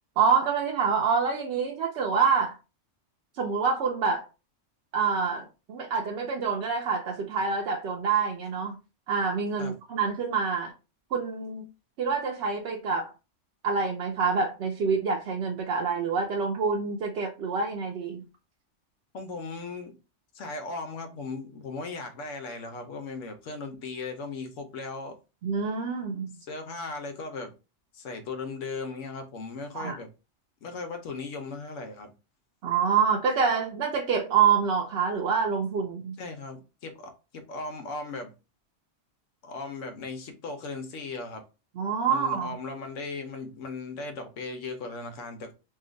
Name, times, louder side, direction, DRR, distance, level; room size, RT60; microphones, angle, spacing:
voice 1, 0.2-2.6 3.4-4.3 4.9-8.8 9.1-10.7 11.1-11.7 12.0-13.1 13.6-18.2 25.4-26.3 29.7-30.0 32.6-36.2 41.8-42.5, right 5 dB, 65° right, 0.8 m, -26 dB
voice 2, 19.1-19.9 20.3-25.2 26.4-27.5 27.9-30.1 30.6-32.1 36.2-38.3 39.4-41.4 42.1-45.5, left 3 dB, 85° left, 1.1 m, -37 dB
2.8 x 2.4 x 3.8 m
omnidirectional pair, 1.2 m